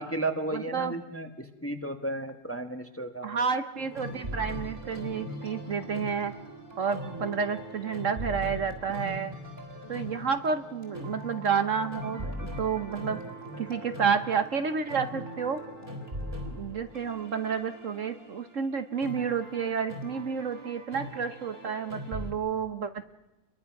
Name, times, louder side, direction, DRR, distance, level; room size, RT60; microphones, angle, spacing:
voice 1, 0.0-3.4, right 1 dB, 10° left, 6 dB, 1.1 m, -34 dB
voice 2, 0.5-0.9 3.2-6.3 6.8-9.3 9.9-13.2 13.6-15.6 16.5-22.9, right 6 dB, 55° right, 9 dB, 1.3 m, -30 dB
sound 1, 3.7-22.3, equal, 35° right, 3.9 m, -40 dB
29.0 x 22.5 x 5.9 m, 1.1 s
omnidirectional pair, 1.7 m